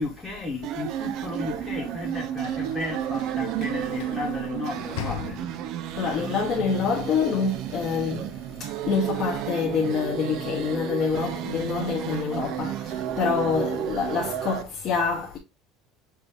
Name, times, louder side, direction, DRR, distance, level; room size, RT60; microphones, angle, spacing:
voice 1, 0.0-5.4, left 2 dB, ahead, 0.9 m, -34 dB
sound 1, 0.6-14.6, right 11 dB, 45° right, 0.4 m, -32 dB
Sliding door / Slam, 1.3-6.0, left 9 dB, 65° left, 0.7 m, -40 dB
voice 2, 6.0-8.2 8.8-12.7 13.2-15.4, left 5 dB, 30° left, 0.9 m, -26 dB
5.9 x 2.5 x 3.3 m
cardioid pair, 175°, 0 cm